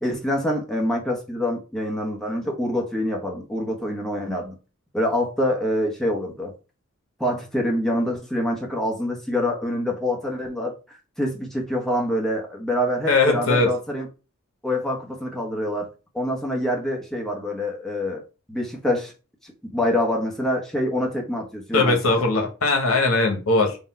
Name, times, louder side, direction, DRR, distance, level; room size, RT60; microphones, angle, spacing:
voice 1, 0.0-4.6 4.9-6.5 7.2-14.1 14.6-15.9 16.1-18.2 18.5-19.1 19.4-22.0, left 1 dB, ahead, 0.8 m, -26 dB
voice 2, 13.1-13.7 21.7-23.8, left 3 dB, 85° left, 0.9 m, -20 dB
4.0 x 2.2 x 4.1 m
head